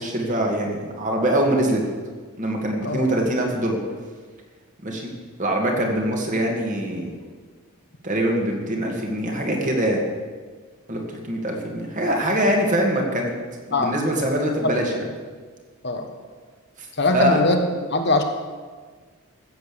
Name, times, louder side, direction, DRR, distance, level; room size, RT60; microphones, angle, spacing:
voice 1, 0.0-1.8 2.4-3.8 4.8-5.1 5.4-7.1 8.0-10.0 10.9-13.3 13.7-15.1 17.1-17.4, right 1 dB, 35° right, 1 dB, 2.1 m, -23 dB
voice 2, 17.0-17.6 17.9-18.2, left 2 dB, 50° left, 5 dB, 1.2 m, -21 dB
15.0 x 7.9 x 6.9 m, 1.5 s
head